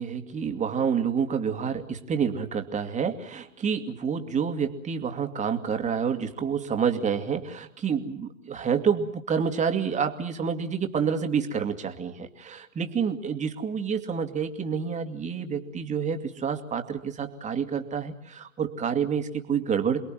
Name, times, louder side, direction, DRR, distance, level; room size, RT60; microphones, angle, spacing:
voice 1, 0.0-20.0, right 6 dB, 20° right, 6 dB, 2.4 m, -28 dB
28.5 x 21.5 x 7.7 m, 0.72 s
figure-of-eight pair, 105°, 40 cm